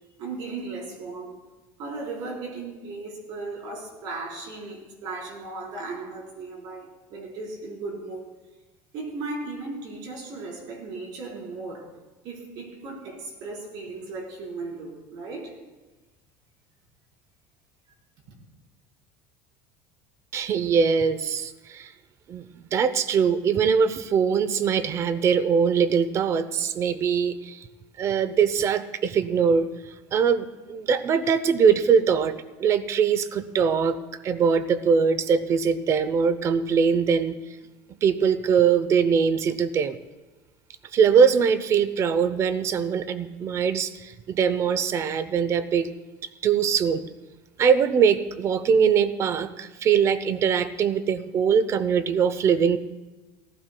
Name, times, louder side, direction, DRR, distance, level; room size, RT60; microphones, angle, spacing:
voice 1, 0.2-1.4 1.8-8.3 8.9-11.9 12.2-15.5, right 3 dB, 60° right, -1 dB, 4.3 m, -36 dB
voice 2, 20.3-21.9 22.3-22.4 22.7-27.6 28.0-29.7 30.1-32.3 32.6-34.0 34.2-37.3 38.0-40.0 40.9-45.9 46.4-47.0 47.6-52.8, right 6 dB, 35° right, 14 dB, 0.7 m, -22 dB
18.0 x 15.0 x 2.2 m, 1.1 s
cardioid pair, 130°, 8 cm